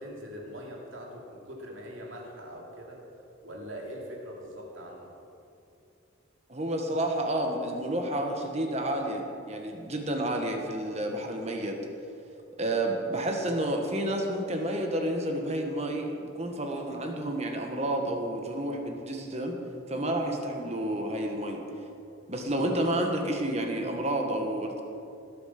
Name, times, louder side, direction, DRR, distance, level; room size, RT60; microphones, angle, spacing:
voice 1, 0.0-3.0 3.4-5.1, equal, 70° right, -1 dB, 3.0 m, -42 dB
voice 2, 6.5-11.8 12.6-19.6 19.9-21.6 22.3-24.8, right 1 dB, 30° right, 2 dB, 1.5 m, -30 dB
19.5 x 8.6 x 6.0 m, 2.7 s
head